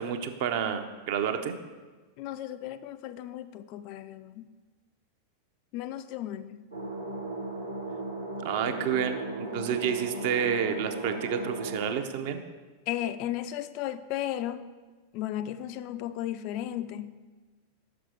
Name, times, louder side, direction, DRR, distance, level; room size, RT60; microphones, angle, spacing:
voice 1, 0.0-1.6 8.4-12.4, right 8 dB, 50° right, 8 dB, 0.6 m, -29 dB
voice 2, 2.2-4.5 5.7-6.7 12.9-14.6 15.1-17.2, left 12 dB, 45° left, 12 dB, 0.3 m, -35 dB
sound 1, 6.7-11.9, right 2 dB, 75° right, 1.1 m, -36 dB
6.1 x 6.1 x 4.8 m, 1.3 s
figure-of-eight pair, 90°, 0 cm